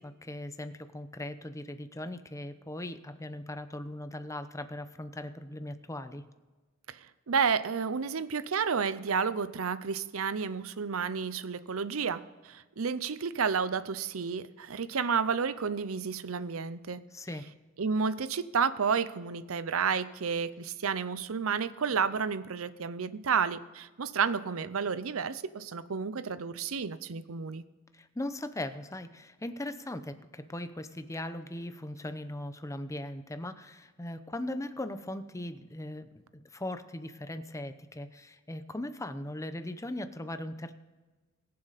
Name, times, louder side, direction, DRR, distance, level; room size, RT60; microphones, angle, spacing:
voice 1, 0.0-6.2 17.1-17.5 27.9-40.7, left 1 dB, 15° left, 10 dB, 0.8 m, -39 dB
voice 2, 7.3-17.0 17.8-27.6, right 6 dB, 80° right, 15 dB, 0.6 m, -31 dB
22.5 x 7.6 x 4.1 m, 1.3 s
head